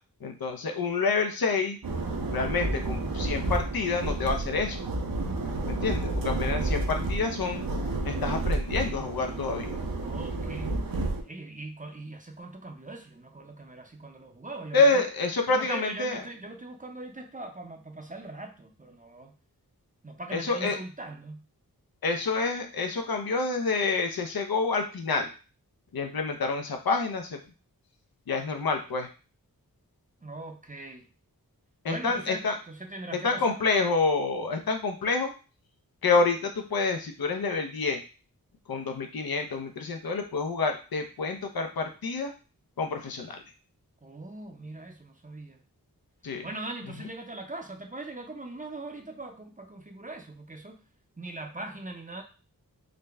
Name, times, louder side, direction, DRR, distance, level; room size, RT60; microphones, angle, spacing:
voice 1, 0.2-1.8 2.3-4.8 5.6-7.6 8.0-9.8 14.7-16.2 20.3-20.8 22.0-25.3 25.9-27.4 28.3-29.1 31.8-32.6 33.2-35.3 36.0-38.0 38.7-42.3 42.8-43.4 46.2-46.5, left 4 dB, 75° left, 5 dB, 0.7 m, -28 dB
sound 1, 1.8-11.2, right 2 dB, 70° right, 0.8 m, -30 dB
voice 2, 10.0-10.8 11.2-15.0 15.5-19.4 20.0-21.4 30.2-31.1 31.9-33.6 44.0-45.6 46.4-50.8 51.2-52.2, right 2 dB, 20° right, 3 dB, 0.6 m, -41 dB
3.8 x 2.1 x 3.3 m, 0.34 s
wide cardioid pair, 60°, 36 cm